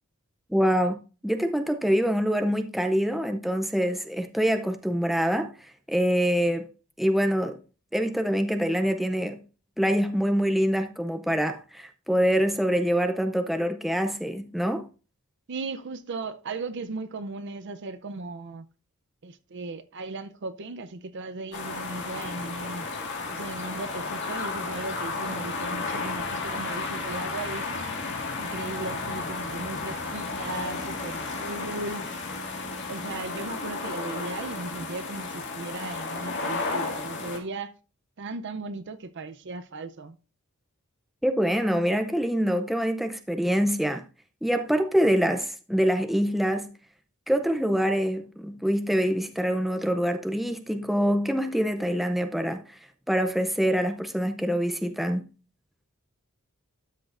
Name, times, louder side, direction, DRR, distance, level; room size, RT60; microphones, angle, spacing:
voice 1, 0.5-5.5 5.9-6.7 7.0-7.6 7.9-9.4 9.8-14.9 41.2-44.0 44.4-46.7 47.3-52.6 53.1-55.2, equal, ahead, 0.5 m, -25 dB
voice 2, 15.5-18.7 19.2-22.9 23.3-27.7 28.3-32.1 32.8-37.7 38.2-40.2, right 3 dB, 55° right, 0.6 m, -37 dB
sound 1, 21.5-37.4, left 3 dB, 55° left, 2.1 m, -33 dB
12.5 x 6.2 x 2.5 m
head